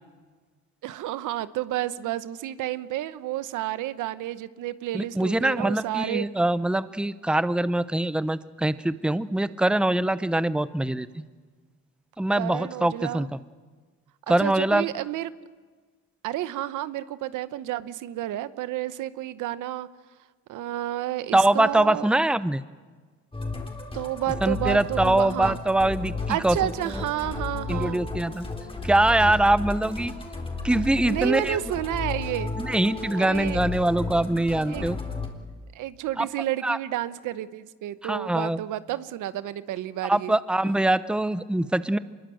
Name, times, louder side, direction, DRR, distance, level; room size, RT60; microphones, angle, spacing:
voice 1, 0.8-6.3 12.4-13.3 14.3-15.3 16.2-19.9 20.5-22.1 23.9-25.6 26.3-28.0 31.0-32.5 33.1-33.6 34.7-34.9 35.7-40.3, right 14 dB, 85° right, 14 dB, 1.0 m, -31 dB
voice 2, 4.9-11.2 12.2-13.3 14.3-14.8 21.3-22.6 24.4-26.7 27.7-28.4 28.8-30.1 30.6-31.6 32.6-35.0 36.2-36.3 36.6-36.8 38.0-38.6 40.1-42.0, right 1 dB, 5° right, 15 dB, 0.8 m, -23 dB
Musical instrument, 23.3-35.3, left 3 dB, 20° left, 4.0 m, -33 dB
24.5 x 21.5 x 7.8 m, 1.4 s
cardioid pair, 90°, 30 cm